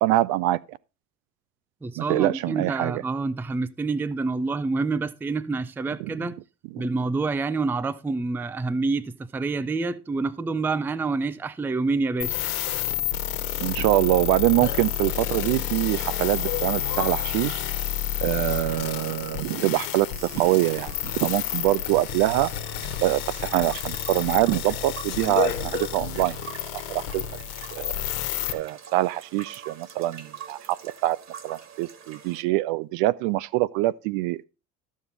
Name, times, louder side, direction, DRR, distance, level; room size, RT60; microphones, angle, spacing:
voice 1, 0.0-0.8 2.0-3.0 6.0-6.1 6.7-6.9 13.6-17.6 18.2-22.5 23.0-26.4 26.9-27.2 27.7-27.9 28.5-31.2 31.4-34.4, right 17 dB, 55° right, 0.5 m, -24 dB
voice 2, 1.8-6.4 6.8-12.4, right 3 dB, 5° right, 0.4 m, -27 dB
sound 1, 12.2-28.5, left 11 dB, 65° left, 1.5 m, -30 dB
sound 2, 12.6-13.0 13.9-14.0 14.4-15.9 16.4-17.6 18.5-19.2 19.7-20.1 21.4-21.7 22.0-22.2 22.7-23.0 23.7-23.8 24.2-26.5, left 8 dB, 85° left, 1.2 m, -36 dB
sound 3, 20.1-32.4, right 7 dB, 35° right, 1.7 m, -45 dB
12.5 x 7.3 x 3.9 m
hypercardioid pair, 80°, 45 cm